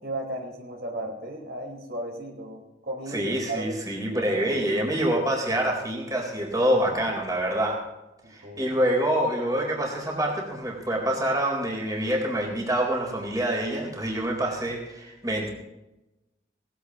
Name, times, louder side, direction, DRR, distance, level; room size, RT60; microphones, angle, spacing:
voice 1, 0.0-3.8 4.3-4.4 8.2-8.7, right 1 dB, 60° right, 1 dB, 4.4 m, -35 dB
voice 2, 3.1-7.8 8.3-15.5, right 1 dB, 20° right, 0 dB, 4.0 m, -26 dB
19.5 x 16.0 x 3.0 m, 0.97 s
head